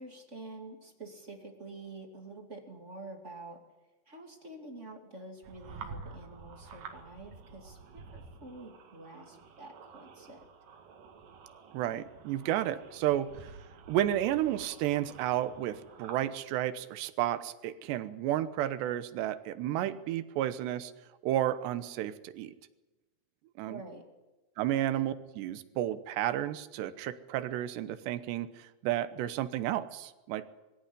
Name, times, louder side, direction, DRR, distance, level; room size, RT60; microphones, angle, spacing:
voice 1, 0.0-3.6 4.1-10.5 23.6-24.1, right 2 dB, 25° right, 3 dB, 1.7 m, -47 dB
sound 1, 5.4-16.4, right 5 dB, 55° right, 3.2 m, -50 dB
voice 2, 11.7-13.5 13.9-20.9 21.2-22.5 23.6-23.8 24.6-30.6, right 12 dB, 80° right, 13 dB, 3.1 m, -32 dB
21.5 x 15.0 x 10.0 m, 1.1 s
omnidirectional pair, 5.1 m